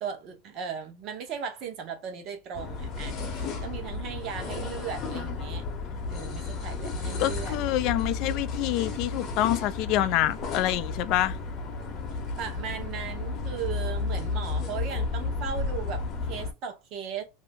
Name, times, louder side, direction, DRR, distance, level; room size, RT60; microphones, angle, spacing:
voice 1, 0.0-5.6 6.1-7.6 12.4-17.2, right 7 dB, 45° right, 0.9 m, -37 dB
sound 1, 2.5-16.5, left 3 dB, 35° left, 0.8 m, -33 dB
voice 2, 7.2-11.4, left 14 dB, 50° left, 0.3 m, -26 dB
2.6 x 2.0 x 3.5 m
supercardioid pair, 135°, 0 cm